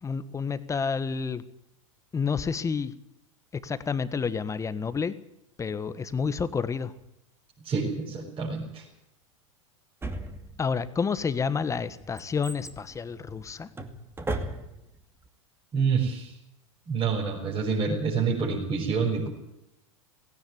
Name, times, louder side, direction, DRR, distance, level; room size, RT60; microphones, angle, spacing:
voice 1, 0.0-1.4 2.1-2.9 3.5-5.1 5.6-6.9 10.6-13.7, left 5 dB, 20° left, 13 dB, 1.4 m, -29 dB
voice 2, 7.6-8.8 15.7-16.3 16.9-19.3, right 5 dB, 30° right, -3 dB, 6.1 m, -27 dB
Drawer open or close, 10.0-10.9 11.5-15.0 15.2-15.3, right 2 dB, 15° right, 2.5 m, -36 dB
17.0 x 17.0 x 9.7 m, 0.83 s
hypercardioid pair, 105°, 17 cm